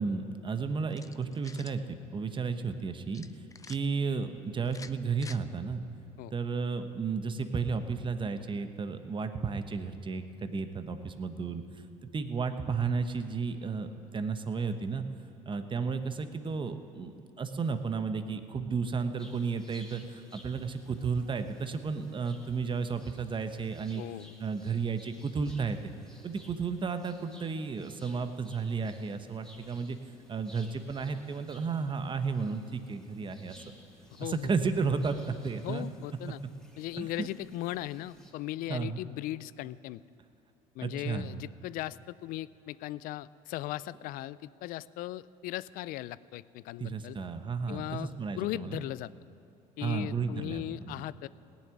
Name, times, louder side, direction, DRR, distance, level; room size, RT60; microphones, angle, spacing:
voice 1, 0.0-1.8 2.1-3.2 3.7-5.8 6.3-11.6 12.1-13.9 14.1-15.0 15.5-24.0 24.4-25.8 26.2-30.0 30.3-33.6 34.2-35.9 37.0-37.3 38.7-39.0 40.8-41.4 46.8-48.8 49.8-51.0, right 5 dB, 30° right, 9 dB, 1.1 m, -33 dB
sound 1, 0.9-1.8 3.1-3.8 4.6-5.4, left 4 dB, 20° left, 0.6 m, -48 dB
sound 2, 19.2-38.3, left 1 dB, 5° left, 3.1 m, -57 dB
voice 2, 24.0-24.4 34.2-34.5 35.6-36.4 36.8-40.0 40.7-47.2 47.7-49.1 49.8-51.3, left 15 dB, 70° left, 19 dB, 0.4 m, -38 dB
17.0 x 7.4 x 9.9 m, 2.9 s
supercardioid pair, 80°, 15 cm